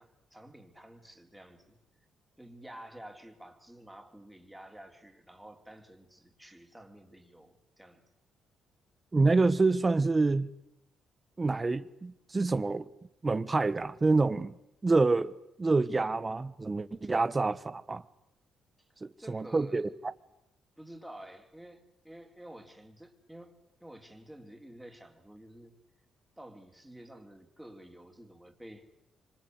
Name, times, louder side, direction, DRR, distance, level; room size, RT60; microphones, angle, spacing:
voice 1, 0.0-1.8 2.4-8.1 18.8-20.0 20.8-25.7 26.4-28.9, right 1 dB, 5° right, 4.1 m, -51 dB
voice 2, 9.1-10.5 11.4-12.9 13.2-14.6 14.8-15.3 15.6-18.0 19.0-19.9, right 3 dB, 25° right, 1.3 m, -27 dB
26.5 x 25.5 x 8.2 m
cardioid pair, 90°, 0 cm